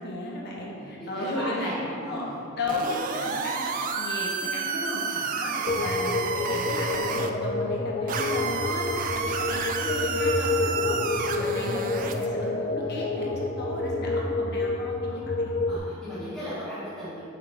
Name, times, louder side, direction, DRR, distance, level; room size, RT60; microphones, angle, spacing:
voice 1, 0.0-2.2 2.6-5.0 5.3-8.9 9.1-11.0 11.3-15.5, left 1 dB, 55° left, -3 dB, 1.1 m, -34 dB
voice 2, 0.6-2.4 3.1-3.3 5.1-5.3 11.1-11.3 15.1-15.2 15.7-17.2, equal, 5° left, -13 dB, 1.5 m, -37 dB
sound 1, 2.7-7.3 8.1-12.3, right 5 dB, 40° right, 0.4 m, -30 dB
sound 2, 5.7-15.8, left 3 dB, 35° left, 0.4 m, -28 dB
6.6 x 6.0 x 3.5 m, 2.7 s
head